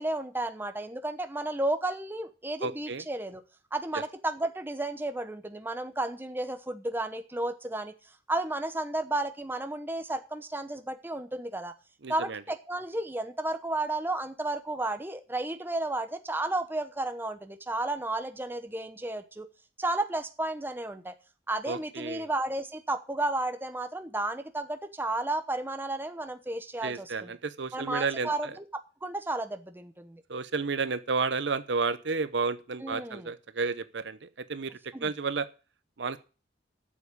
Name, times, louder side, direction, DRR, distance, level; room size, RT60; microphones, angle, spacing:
voice 1, 0.0-3.4 3.7-7.9 8.3-11.7 12.1-19.5 19.8-21.1 21.5-27.4 27.7-28.7 29.0-30.2 32.8-33.3 34.9-35.1, right 2 dB, 10° right, 8 dB, 1.0 m, -32 dB
voice 2, 2.6-3.0 12.0-12.4 21.7-22.3 26.8-28.3 30.3-35.5 36.0-36.2, right 4 dB, 70° right, 13 dB, 0.8 m, -31 dB
8.5 x 7.2 x 8.4 m, 0.34 s
head